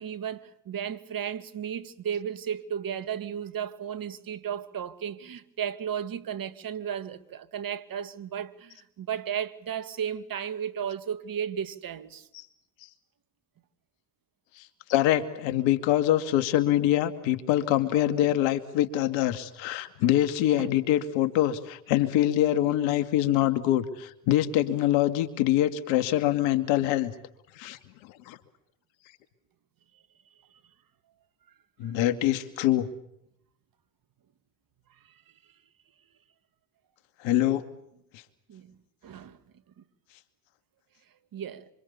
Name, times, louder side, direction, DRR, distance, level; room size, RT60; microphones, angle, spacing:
voice 1, 0.0-12.3 20.6-20.7 35.1-35.2 38.5-38.7 39.0-39.4 41.3-41.7, right 8 dB, 45° right, 2.6 m, -34 dB
voice 2, 14.9-27.1 27.6-27.8 28.3-28.4 31.8-32.9 37.2-37.6 38.1-38.2, left 13 dB, 70° left, 2.5 m, -24 dB
27.5 x 27.5 x 7.1 m
supercardioid pair, 80°, 47 cm